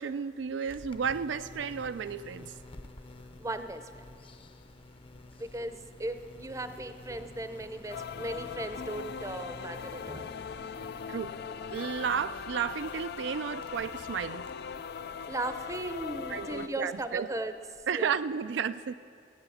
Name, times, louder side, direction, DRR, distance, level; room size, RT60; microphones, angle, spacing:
voice 1, 0.0-2.5 11.1-11.3 11.7-14.5 16.3-17.3 17.9-18.9, right 7 dB, 80° right, 13 dB, 0.3 m, -32 dB
sound 1, 0.7-17.9, left 2 dB, 30° left, 0.7 m, -51 dB
voice 2, 3.4-3.8 5.4-10.3 15.3-17.5 17.9-18.1, right 2 dB, 20° right, 10 dB, 0.6 m, -37 dB
sound 2, 7.9-16.7, left 7 dB, 60° left, 0.4 m, -40 dB
16.5 x 9.0 x 7.0 m, 2.4 s
head